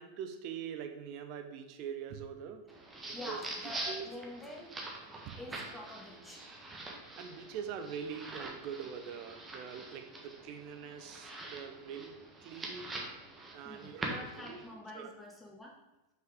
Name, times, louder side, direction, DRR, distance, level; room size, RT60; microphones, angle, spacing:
voice 1, 0.0-2.6 3.1-3.4 3.9-4.1 5.2-5.4 7.2-13.0 13.5-14.6 14.9-15.1, right 7 dB, 40° right, 7 dB, 0.8 m, -43 dB
sound 1, 2.7-14.7, right 2 dB, 15° right, 1.3 m, -44 dB
voice 2, 3.1-4.8 5.4-6.4 13.6-15.8, left 1 dB, 5° left, -1 dB, 1.6 m, -46 dB
5.8 x 5.7 x 5.1 m, 1.0 s
figure-of-eight pair, 90°, 0 cm